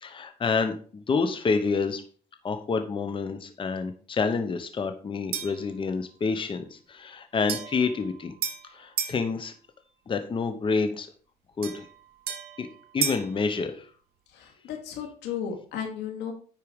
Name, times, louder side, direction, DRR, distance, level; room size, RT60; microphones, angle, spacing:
voice 1, 0.0-2.0 2.4-8.3 8.7-9.5 10.1-11.1 11.6-11.9 12.6-12.7 12.9-13.9, left 4 dB, 30° left, 7 dB, 1.0 m, -28 dB
sound 1, 5.3-5.7 7.5-9.2 11.6-13.3, right 8 dB, 65° right, 1.4 m, -33 dB
voice 2, 14.3-16.3, left 8 dB, 90° left, 2 dB, 2.3 m, -34 dB
9.9 x 4.6 x 5.2 m, 0.43 s
cardioid pair, 110°, 17 cm